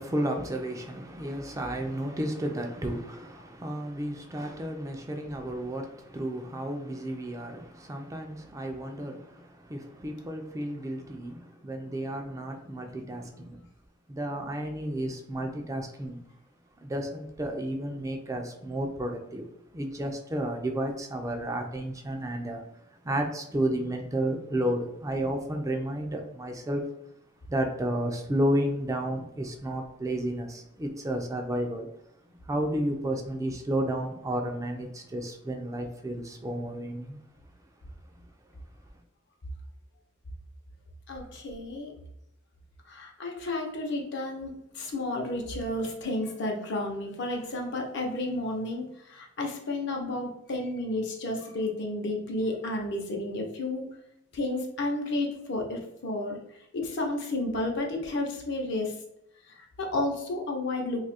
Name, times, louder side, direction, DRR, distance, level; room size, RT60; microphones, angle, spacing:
voice 1, 0.0-13.7 14.1-16.2 16.8-19.5 19.7-22.6 23.0-26.8 27.5-31.9 32.4-37.2, right 1 dB, 15° right, 3 dB, 0.3 m, -32 dB
voice 2, 41.1-41.9 42.9-53.9 54.3-56.4 56.7-59.0 59.5-61.0, left 2 dB, 60° left, 1 dB, 0.7 m, -32 dB
2.6 x 2.4 x 4.1 m, 0.78 s
head